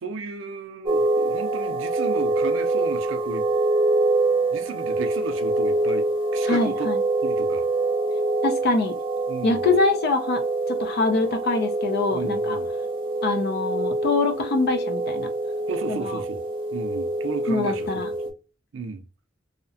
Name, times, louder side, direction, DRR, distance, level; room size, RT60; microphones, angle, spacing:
voice 1, 0.0-3.5 4.5-6.9 7.2-7.7 9.3-9.7 12.1-12.7 15.7-16.4 16.7-17.9 18.2-18.3 18.7-19.1, right 4 dB, 80° right, 0.5 m, -34 dB
sound 1, 0.9-18.3, right 2 dB, 25° right, 0.6 m, -25 dB
voice 2, 6.5-7.0 8.4-9.0 9.4-12.6 13.2-15.3 15.9-16.2 17.5-18.1, left 3 dB, 55° left, 0.4 m, -24 dB
2.7 x 2.0 x 2.7 m
head